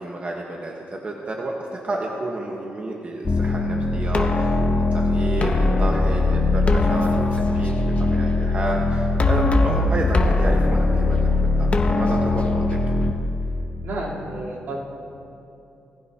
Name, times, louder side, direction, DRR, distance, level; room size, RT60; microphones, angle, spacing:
voice 1, 0.0-4.6 4.9-11.2 11.6-12.8, right 2 dB, 35° right, -1 dB, 1.4 m, -31 dB
sound 1, 3.3-13.1, left 2 dB, 35° left, 1.0 m, -20 dB
voice 2, 13.8-14.8, right 2 dB, 75° right, -7 dB, 3.8 m, -32 dB
20.0 x 15.0 x 3.0 m, 2.7 s
cardioid pair, 90°, 4 cm